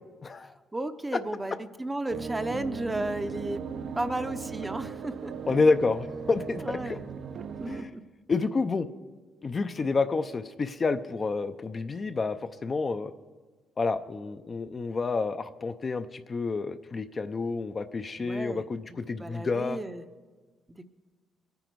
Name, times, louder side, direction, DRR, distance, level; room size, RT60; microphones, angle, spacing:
voice 1, 0.2-0.5 5.5-7.0 7.7-7.9 8.3-8.9 9.4-12.4 12.6-13.1 13.8-19.8, left 4 dB, 35° left, 9 dB, 0.5 m, -29 dB
voice 2, 0.7-3.6 3.9-5.5 6.6-7.0 7.6-8.0 18.2-18.6 18.9-20.0 20.7-20.9, right 1 dB, 15° right, 10 dB, 0.7 m, -34 dB
sound 1, 2.1-7.8, right 6 dB, 60° right, 0.6 m, -38 dB
22.0 x 9.2 x 4.6 m, 1.4 s
cardioid pair, 90°, 0 cm